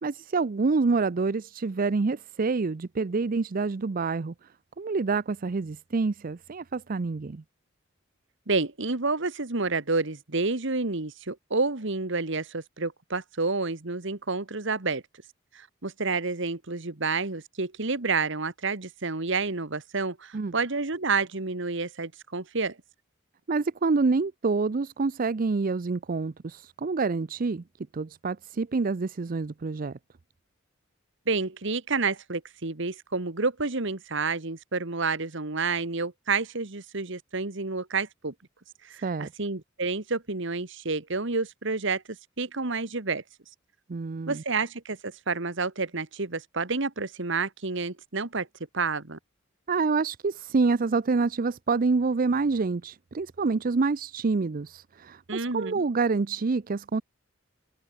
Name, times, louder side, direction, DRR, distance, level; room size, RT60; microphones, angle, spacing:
voice 1, 0.0-4.3 4.8-7.4 20.3-20.5 23.5-27.6 27.9-30.0 39.0-39.3 43.9-44.4 49.7-57.0, right 4 dB, 45° right, 0.5 m, -27 dB
voice 2, 8.5-15.0 15.5-22.8 31.3-38.3 38.8-42.0 42.4-43.2 44.3-48.5 48.7-49.2 55.3-55.8, right 4 dB, 65° right, 1.7 m, -29 dB
open air
head